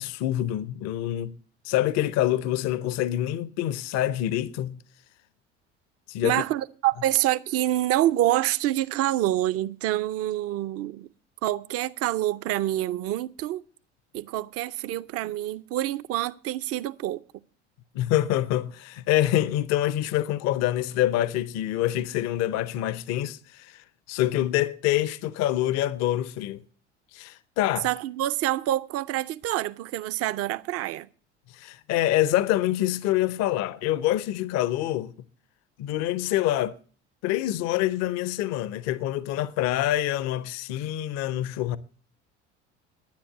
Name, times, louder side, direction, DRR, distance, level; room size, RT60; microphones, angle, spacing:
voice 1, 0.0-1.4 1.6-4.8 6.1-6.4 17.9-26.6 27.1-27.9 31.5-35.1 35.8-36.8 37.2-41.8, left 13 dB, 50° left, 0.8 m, -26 dB
voice 2, 6.2-11.1 11.4-13.6 14.1-17.2 27.8-31.1, right 14 dB, 45° right, 0.7 m, -27 dB
10.5 x 10.0 x 7.8 m
figure-of-eight pair, 65°, 34 cm